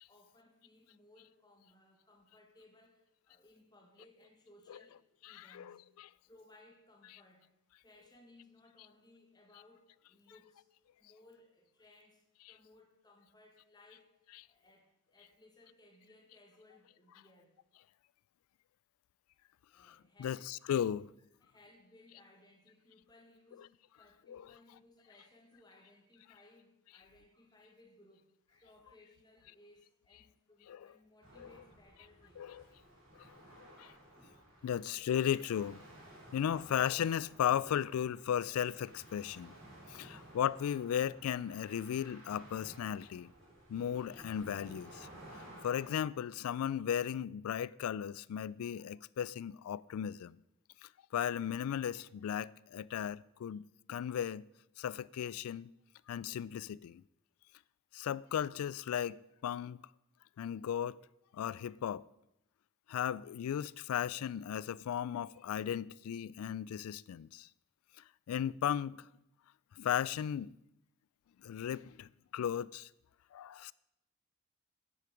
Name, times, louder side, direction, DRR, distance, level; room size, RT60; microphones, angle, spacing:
voice 1, 0.1-5.8 6.3-7.5 7.8-10.7 11.0-17.5 19.7-20.5 20.9-21.1 21.4-32.8 33.2-34.8 39.5-39.6 40.1-40.4, left 2 dB, 20° left, 1.4 m, -63 dB
voice 2, 4.7-5.0 5.2-6.1 10.3-10.4 12.5-12.6 19.8-21.1 23.5-23.6 24.3-24.8 28.9-29.0 30.7-31.0 31.4-31.6 32.4-32.7 33.6-33.9 34.6-35.8 36.3-39.5 39.9-43.3 43.7-45.1 45.3-50.4 50.8-54.4 54.8-55.7 56.1-57.0 57.9-59.8 60.4-61.0 61.3-62.0 62.9-67.5 68.3-69.1 69.8-70.5 71.4-72.9 73.3-73.7, left 9 dB, 80° left, 0.3 m, -36 dB
sound 1, 31.2-46.0, right 1 dB, 60° right, 3.7 m, -56 dB
9.4 x 8.7 x 5.1 m
head